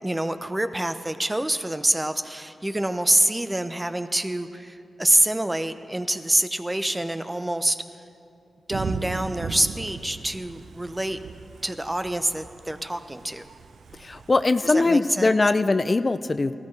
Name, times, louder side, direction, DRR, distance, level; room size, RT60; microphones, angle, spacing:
voice 1, 0.0-7.8 8.7-11.2 11.6-13.5 14.6-15.3, right 1 dB, 20° right, 10 dB, 0.8 m, -26 dB
Thunder / Rain, 8.7-14.4, right 5 dB, 80° right, 0.4 m, -37 dB
voice 2, 14.0-16.5, left 3 dB, 40° left, 12 dB, 0.4 m, -21 dB
17.0 x 13.5 x 3.3 m, 2.6 s
supercardioid pair, 40°, 0 cm